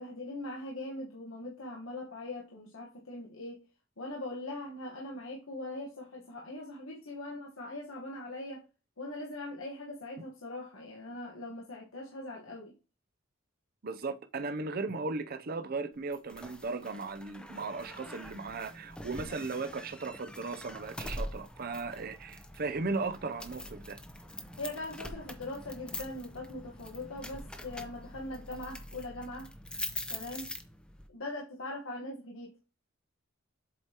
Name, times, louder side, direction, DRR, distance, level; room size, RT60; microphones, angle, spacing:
voice 1, 0.0-3.6 4.0-8.6 9.0-12.7 19.2-19.4 24.6-29.5 30.1-30.5 31.1-32.5, left 2 dB, 85° left, 1.3 m, -41 dB
voice 2, 13.8-24.0, right 3 dB, 45° right, 0.6 m, -36 dB
sound 1, 16.1-31.1, left 1 dB, 5° left, 0.7 m, -44 dB
7.6 x 4.9 x 2.9 m
head